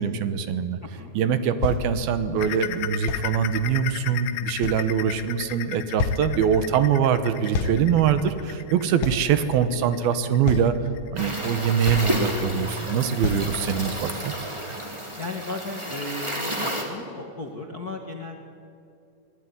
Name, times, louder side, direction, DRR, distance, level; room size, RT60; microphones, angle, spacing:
voice 1, 0.0-0.8 1.2-10.8 11.1-14.3, right 8 dB, 80° right, 11 dB, 3.0 m, -23 dB
voice 2, 0.8-1.1 15.2-18.5, left 2 dB, 45° left, 2 dB, 1.3 m, -35 dB
sound 1, 1.0-1.1 1.6-1.8 3.1-3.3 4.1-4.2 4.6-5.3 5.6-5.7 6.0-6.2 7.5-7.8 8.1-8.2 9.0-9.2 9.9-10.0 10.4-10.8 11.5-11.6 11.9-12.2 12.6-12.7 13.2-13.5 14.1-14.2, left 4 dB, 60° left, 1.6 m, -28 dB
sound 2, 2.4-13.7 14.1-14.3 14.7-14.8 15.3-15.4, left 13 dB, 85° left, 2.7 m, -36 dB
sound 3, 11.2-16.8, equal, 10° right, 2.6 m, -31 dB
25.0 x 18.0 x 9.7 m, 2.5 s
omnidirectional pair, 4.4 m